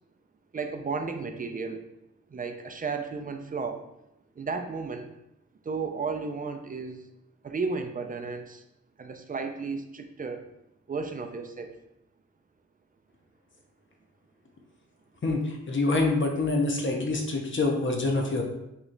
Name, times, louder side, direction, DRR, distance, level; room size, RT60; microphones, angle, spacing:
voice 1, 0.5-1.8 2.3-3.8 4.4-5.1 5.7-7.1 7.4-8.6 9.0-10.4 10.9-11.7, right 4 dB, 30° right, 5 dB, 0.4 m, -33 dB
voice 2, 15.2-18.4, left 2 dB, 40° left, 1 dB, 0.7 m, -26 dB
3.1 x 3.0 x 3.8 m, 0.86 s
wide cardioid pair, 125°, 30 cm